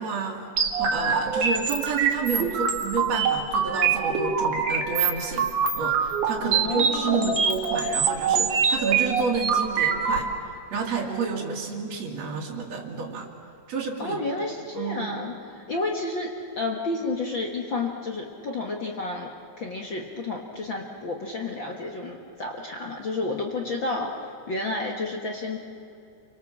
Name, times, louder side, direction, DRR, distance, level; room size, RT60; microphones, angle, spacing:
voice 1, 0.0-13.3 13.7-14.2 14.7-15.1, right 4 dB, 55° right, -3 dB, 3.3 m, -30 dB
sound 1, 0.6-10.2, right 6 dB, 70° right, 3.3 m, -24 dB
voice 2, 6.4-7.3 14.0-19.3 19.6-25.6, left 3 dB, 45° left, 0 dB, 1.9 m, -31 dB
29.5 x 24.5 x 7.4 m, 2.7 s
omnidirectional pair, 3.7 m